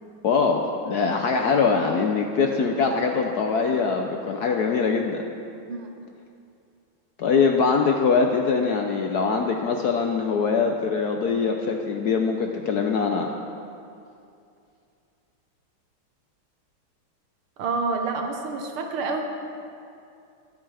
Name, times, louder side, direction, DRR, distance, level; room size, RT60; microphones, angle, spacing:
voice 1, 0.2-5.2 7.2-13.3, left 5 dB, 70° left, 3 dB, 0.9 m, -23 dB
voice 2, 17.6-19.2, right 4 dB, 80° right, 3 dB, 2.0 m, -28 dB
21.5 x 8.9 x 3.4 m, 2.5 s
omnidirectional pair, 2.3 m